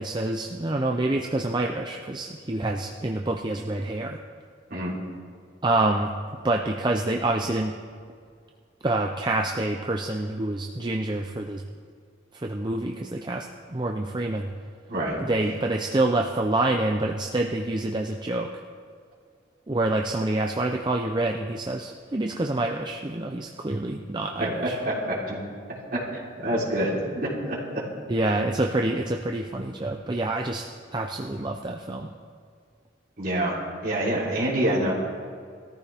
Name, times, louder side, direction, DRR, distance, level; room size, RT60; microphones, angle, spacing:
voice 1, 0.0-4.2 5.6-7.7 8.8-11.6 12.3-14.5 15.2-18.5 19.7-24.8 28.1-30.7 30.9-32.1, right 2 dB, 25° right, 2 dB, 0.6 m, -27 dB
voice 2, 14.9-15.2 24.4-24.5 24.8-25.4 25.9-27.8 33.2-34.9, right 1 dB, 50° right, -5 dB, 3.5 m, -27 dB
21.0 x 14.0 x 3.5 m, 2.2 s
head